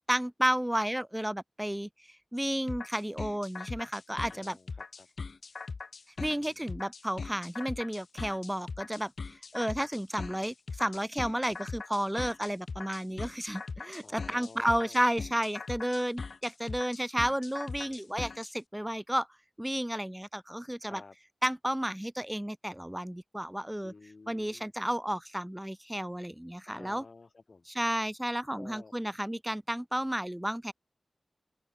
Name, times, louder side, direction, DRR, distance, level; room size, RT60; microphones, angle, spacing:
voice 1, 0.1-1.9 2.3-4.6 6.2-9.1 9.5-19.3 19.6-21.0 21.4-23.9 24.3-27.0 27.7-30.7, equal, 10° right, 1.3 m, -32 dB
sound 1, 2.7-18.5, left 4 dB, 70° left, 1.7 m, -40 dB
voice 2, 4.3-5.1 6.3-6.8 14.0-15.0 20.8-21.2 23.8-24.7 26.7-27.7 28.5-28.9, left 3 dB, 55° left, 3.6 m, -52 dB
open air
wide cardioid pair, 60°, 0 cm